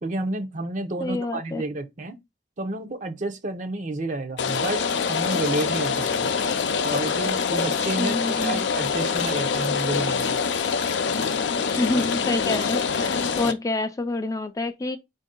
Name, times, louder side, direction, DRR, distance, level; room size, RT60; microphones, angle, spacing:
voice 1, 0.0-2.2 2.6-6.3 6.8-10.4, right 2 dB, 45° right, 0.7 m, -30 dB
voice 2, 1.0-1.6 8.0-8.6 11.6-15.0, left 2 dB, 20° left, 0.4 m, -27 dB
Rain, 4.4-13.5, left 5 dB, 80° left, 0.5 m, -25 dB
4.6 x 2.6 x 3.6 m
head